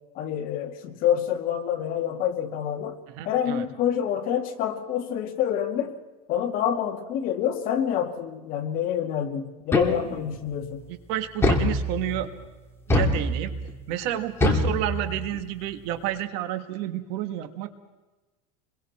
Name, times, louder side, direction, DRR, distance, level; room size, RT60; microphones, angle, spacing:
voice 1, 0.1-3.0 3.3-6.0 6.3-10.8, left 9 dB, 45° left, 4 dB, 2.3 m, -27 dB
voice 2, 3.2-3.6 11.1-12.3 12.9-13.5 13.9-17.7, right 12 dB, 55° right, 9 dB, 1.6 m, -30 dB
sound 1, 9.7-10.4 11.4-12.3 12.9-13.7 14.4-15.4, left 2 dB, 10° left, 2.4 m, -24 dB
28.0 x 22.5 x 4.3 m, 1.2 s
supercardioid pair, 150°, 20 cm